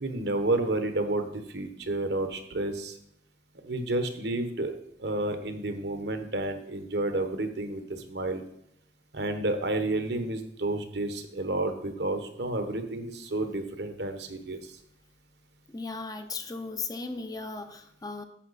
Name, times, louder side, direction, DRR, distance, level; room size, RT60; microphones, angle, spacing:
voice 1, 0.0-3.0 3.6-4.7 5.0-8.4 9.1-14.6, right 2 dB, 65° right, 7 dB, 1.1 m, -30 dB
voice 2, 15.7-18.2, left 3 dB, 20° left, 7 dB, 0.6 m, -36 dB
10.0 x 7.1 x 4.1 m, 0.75 s
head